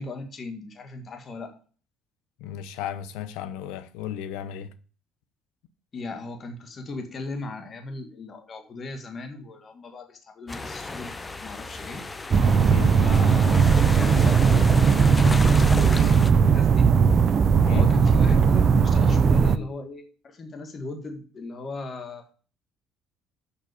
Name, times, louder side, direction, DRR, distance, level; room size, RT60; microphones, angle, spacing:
voice 1, 0.0-1.6 5.9-12.1 13.0-13.7 13.9-14.9 15.4-16.9 17.7-22.3, left 3 dB, 40° left, 1.8 m, -37 dB
voice 2, 2.4-4.7 12.7-13.0 17.7-17.9, left 9 dB, 80° left, 0.9 m, -34 dB
sound 1, 10.5-16.3, left 3 dB, 20° left, 0.8 m, -34 dB
sound 2, 12.3-19.6, right 6 dB, 45° right, 0.6 m, -18 dB
7.2 x 6.0 x 6.8 m
supercardioid pair, 85°, 0 cm